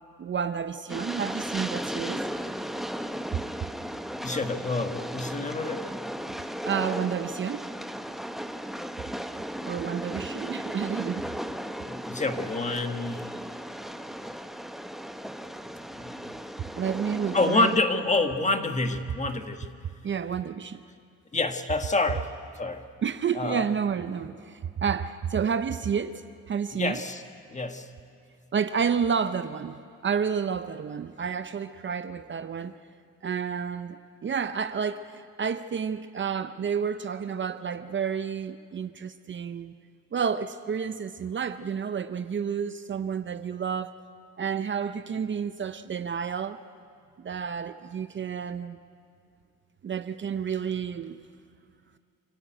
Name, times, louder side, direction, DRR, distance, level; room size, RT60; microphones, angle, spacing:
voice 1, 0.2-2.2 6.7-7.7 9.7-11.3 16.8-17.7 20.0-20.8 23.0-27.0 28.5-32.8 33.2-39.7 40.1-43.9 44.4-46.6 47.2-48.8 49.8-51.2, right 7 dB, 40° right, 11 dB, 0.7 m, -30 dB
Train, 0.9-17.8, equal, ahead, 0.8 m, -36 dB
voice 2, 4.2-5.8 11.9-13.2 15.9-16.3 17.3-19.7 21.3-22.3 22.5-22.9 23.3-23.7 26.7-27.2 27.5-27.9, left 2 dB, 25° left, 6 dB, 1.6 m, -27 dB
27.5 x 13.0 x 9.2 m, 2.4 s
cardioid pair, 90°, 30 cm